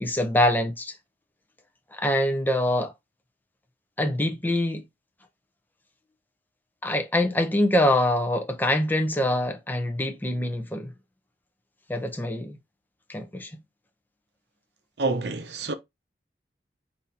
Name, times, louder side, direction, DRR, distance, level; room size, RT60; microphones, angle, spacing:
voice 1, 0.0-0.9 1.9-2.9 4.0-4.8 6.8-10.9 11.9-12.6 13.1-13.5, left 1 dB, 10° left, 0.7 m, -24 dB
voice 2, 15.0-15.7, right 3 dB, 70° right, 0.7 m, -27 dB
4.1 x 2.8 x 4.1 m
head